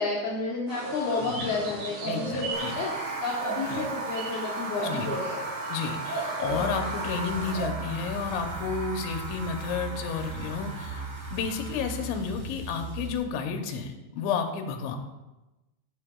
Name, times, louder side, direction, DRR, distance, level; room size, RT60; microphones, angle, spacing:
voice 1, 0.0-5.4 6.5-6.6, left 3 dB, 70° left, -5 dB, 1.9 m, -31 dB
sound 1, 0.7-7.7, right 2 dB, 80° right, 4.6 m, -36 dB
voice 2, 1.2-1.6 2.1-2.8 3.7-3.9 4.8-5.2 5.7-15.0, left 6 dB, 85° left, 5 dB, 3.1 m, -32 dB
sound 2, 2.5-12.2, right 3 dB, 45° right, 3.0 m, -37 dB
sound 3, 6.4-13.2, right 2 dB, 20° right, 2.9 m, -38 dB
13.5 x 6.6 x 2.3 m, 1.0 s
omnidirectional pair, 5.2 m